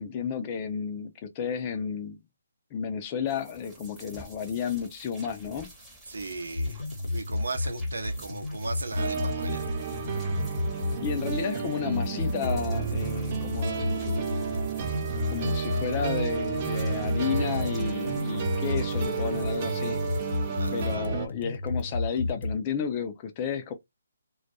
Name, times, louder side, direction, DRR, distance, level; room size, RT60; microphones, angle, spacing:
voice 1, 0.0-2.2 2.7-5.7 11.0-14.5 15.3-20.0 20.7-23.7, left 7 dB, 25° left, 0.4 m, -32 dB
sound 1, 3.3-21.0, right 1 dB, 10° right, 0.8 m, -50 dB
voice 2, 6.1-6.8 7.1-9.6 20.6-21.0, right 3 dB, 75° right, 0.7 m, -37 dB
sound 2, 6.5-22.5, left 2 dB, 75° left, 0.7 m, -32 dB
sound 3, 9.0-21.3, right 6 dB, 35° right, 0.4 m, -32 dB
2.2 x 2.1 x 2.7 m
hypercardioid pair, 155°, 0 cm